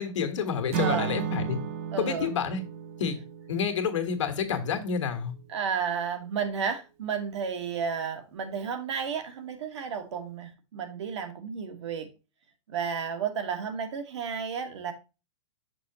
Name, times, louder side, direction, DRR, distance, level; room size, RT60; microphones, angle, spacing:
voice 1, 0.0-1.6 2.0-2.6 3.0-3.2 3.5-5.3, left 6 dB, 70° left, 1.5 m, -29 dB
Acoustic guitar / Strum, 0.7-4.8, right 7 dB, 25° right, 0.4 m, -34 dB
voice 2, 0.8-1.1 1.9-2.3 5.5-12.1 12.7-14.9, right 6 dB, 65° right, 1.4 m, -32 dB
6.1 x 5.8 x 2.9 m
supercardioid pair, 180°, 16 cm